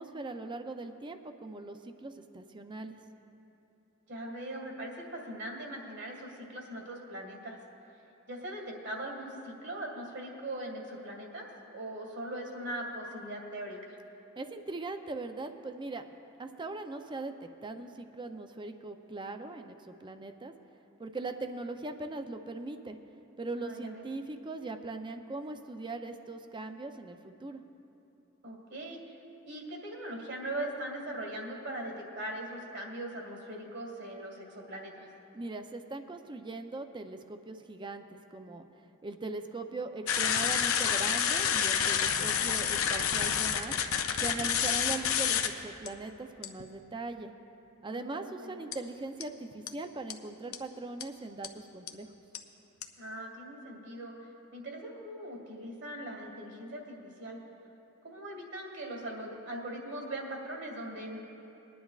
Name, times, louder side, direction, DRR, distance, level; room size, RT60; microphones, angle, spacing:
voice 1, 0.0-3.0 14.4-20.5 21.0-23.0 23.4-27.6 35.3-38.0 38.3-38.7 39.0-43.8 44.2-47.3 47.8-52.1, right 2 dB, 20° right, 7 dB, 0.5 m, -40 dB
voice 2, 4.1-7.6 8.3-11.5 11.7-14.0 23.6-24.1 28.4-29.0 29.4-35.1 47.9-48.6 53.0-54.2 54.5-57.4 58.0-61.2, right 1 dB, 55° right, 0 dB, 1.9 m, -40 dB
sound 1, 40.1-45.5 45.9-46.0 46.4-46.6 48.7-48.8 49.2-49.3 49.7-49.8 50.1-50.2 50.5-50.6 51.0-51.1 51.4-51.5 51.9-52.0 52.3-52.4 52.8-52.9, left 8 dB, 70° left, 0.6 m, -28 dB
22.0 x 10.0 x 2.4 m, 2.9 s
head